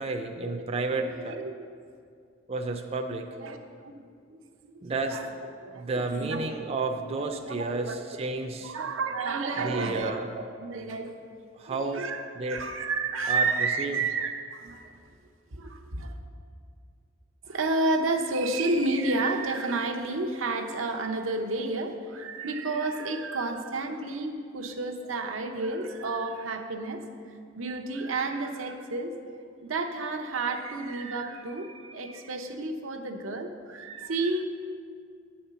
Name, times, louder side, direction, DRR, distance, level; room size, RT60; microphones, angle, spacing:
voice 1, 0.0-1.4 2.5-3.3 4.8-5.2 5.7-8.8 9.6-10.3 11.5-12.1 12.3-12.6 13.3-13.5 13.8-14.0, right 3 dB, 30° right, 4 dB, 0.4 m, -31 dB
voice 2, 1.3-1.8 3.4-3.6 3.8-3.9 4.3-5.3 5.6-5.8 6.1-6.4 7.4-8.0 8.6-10.3 10.6-11.1 11.7-14.9 15.5-16.2 17.4-27.0 27.5-29.1 29.6-34.4, right 3 dB, 90° right, 4 dB, 0.8 m, -31 dB
9.6 x 4.3 x 6.8 m, 2.3 s
head